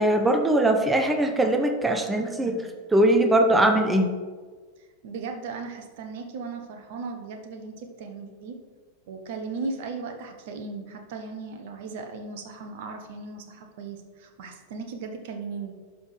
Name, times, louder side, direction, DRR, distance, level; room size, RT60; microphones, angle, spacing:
voice 1, 0.0-4.1, right 1 dB, 10° right, 5 dB, 0.9 m, -21 dB
voice 2, 5.0-8.6 9.1-15.7, right 4 dB, 50° right, 5 dB, 1.0 m, -37 dB
11.5 x 5.7 x 3.2 m, 1.5 s
figure-of-eight pair, 90°, 0 cm